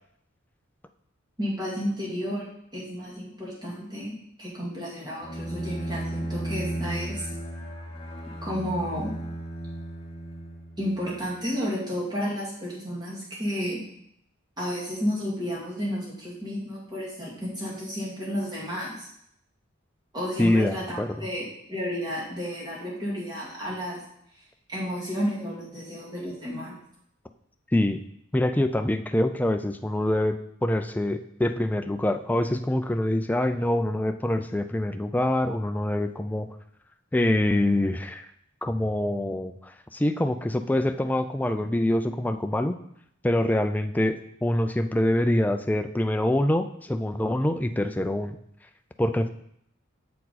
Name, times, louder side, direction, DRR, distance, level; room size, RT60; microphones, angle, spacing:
voice 1, 1.4-2.5 2.7-7.3 8.4-9.1 10.8-13.8 14.6-19.1 20.1-24.0 24.7-26.8, equal, 20° right, -6 dB, 2.2 m, -32 dB
Bowed string instrument, 5.2-11.0, right 1 dB, 30° left, 1.0 m, -34 dB
voice 2, 20.4-21.2 27.7-28.0 28.3-36.5 37.1-38.3 38.6-42.8 43.2-48.4 49.0-49.3, left 1 dB, 10° left, 8 dB, 0.3 m, -25 dB
7.4 x 4.6 x 4.0 m, 0.72 s
head